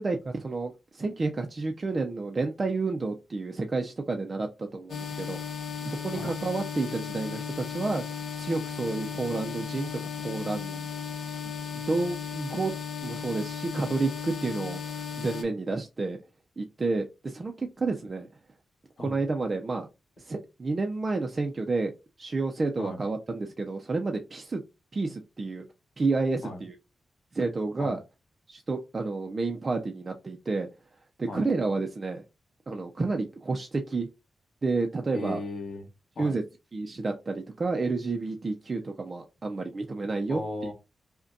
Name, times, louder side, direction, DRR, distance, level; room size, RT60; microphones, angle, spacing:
voice 1, 0.0-5.4 5.8-8.0 8.4-9.9 10.2-10.9 11.9-12.7 13.0-14.8 15.2-16.2 16.6-18.3 19.0-19.9 20.3-21.9 22.2-24.6 24.9-25.6 26.0-26.8 27.3-28.0 28.5-30.7 31.2-32.2 32.7-34.1 34.6-35.4 36.2-36.4 36.7-40.4, right 3 dB, 30° right, 3 dB, 0.4 m, -30 dB
sound 1, 4.9-15.4, left 6 dB, 70° left, 0.8 m, -36 dB
voice 2, 35.1-35.9 36.2-36.3 40.3-40.7, left 2 dB, 50° left, 2 dB, 1.2 m, -36 dB
5.1 x 2.2 x 2.6 m, 0.27 s
wide cardioid pair, 145°, 0 cm